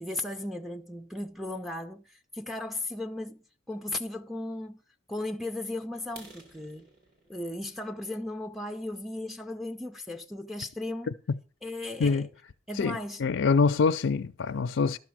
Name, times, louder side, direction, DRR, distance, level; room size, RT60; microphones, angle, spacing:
voice 1, 0.0-4.8 5.1-6.9 7.3-11.1 11.6-12.3 12.7-13.2, left 2 dB, ahead, 0.4 m, -36 dB
sound 1, 6.0-9.8 10.3-10.5 11.0-11.1 11.5-11.7 12.0-12.1 12.5-12.6 12.9-13.4, right 2 dB, 50° right, 2.5 m, -55 dB
voice 2, 12.8-15.0, left 5 dB, 70° left, 0.4 m, -25 dB
12.0 x 6.0 x 6.1 m
head